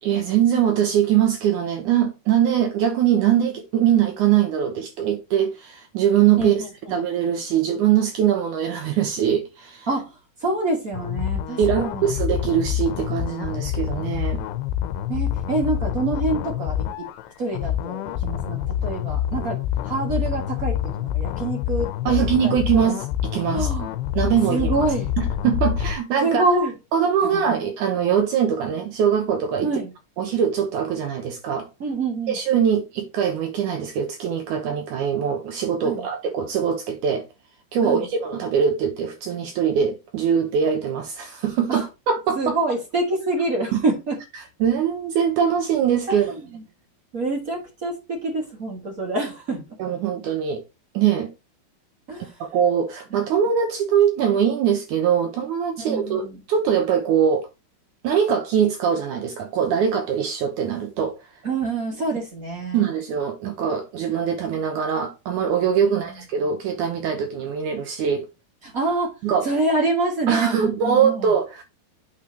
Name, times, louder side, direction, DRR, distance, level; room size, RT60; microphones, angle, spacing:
voice 1, 0.0-6.6 6.9-9.9 11.6-14.4 22.1-23.7 24.2-24.7 25.2-26.4 26.9-29.7 30.2-31.7 32.3-37.3 37.7-42.6 43.7-43.8 44.6-46.3 49.8-50.6 50.9-51.3 52.4-57.5 58.0-61.2 62.7-68.3 69.2-69.5 70.3-71.6, right 8 dB, 70° right, 2.0 m, -22 dB
voice 2, 6.4-6.9 9.9-12.1 15.1-17.1 17.4-19.6 19.8-22.9 23.5-23.9 24.5-25.1 26.2-26.7 29.6-29.9 31.8-32.4 35.8-36.0 37.8-38.1 41.7-41.9 42.3-44.2 46.1-46.6 47.1-49.6 52.1-52.4 53.1-53.3 55.8-56.4 61.4-62.9 65.9-66.0 68.6-69.1 69.4-71.3, right 2 dB, 45° right, 1.1 m, -26 dB
sound 1, 10.9-26.0, left 11 dB, 85° left, 2.7 m, -27 dB
8.7 x 5.7 x 2.9 m
omnidirectional pair, 4.6 m